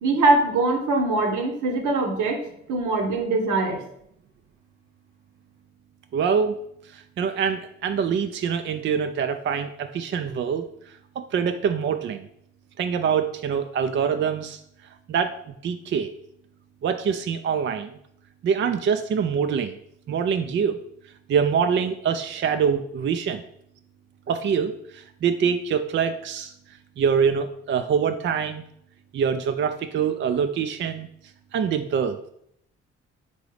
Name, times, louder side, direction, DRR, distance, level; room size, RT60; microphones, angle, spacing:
voice 1, 0.0-2.4 2.7-3.8, right 2 dB, 65° right, 3 dB, 0.9 m, -22 dB
voice 2, 6.1-6.6 6.9-10.7 11.3-12.3 12.8-14.6 15.1-15.3 15.6-16.1 16.8-18.0 18.4-19.8 20.1-20.8 21.3-23.4 24.3-26.5 27.0-28.6 29.1-31.1 31.5-32.2, right 7 dB, 35° right, 7 dB, 0.4 m, -24 dB
3.9 x 3.8 x 3.2 m, 0.72 s
hypercardioid pair, 40°, 33 cm